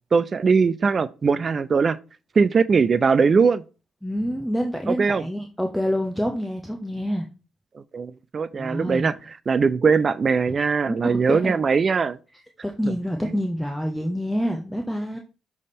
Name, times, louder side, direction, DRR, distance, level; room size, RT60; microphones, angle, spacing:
voice 1, 0.1-2.0 2.4-3.6 4.9-5.2 7.7-9.1 9.5-12.2, right 5 dB, 40° right, 0.3 m, -20 dB
voice 2, 4.0-7.3 8.5-9.1 10.9-11.5 12.6-15.2, equal, ahead, 0.8 m, -27 dB
6.3 x 3.5 x 4.2 m
cardioid pair, 90°, 0 cm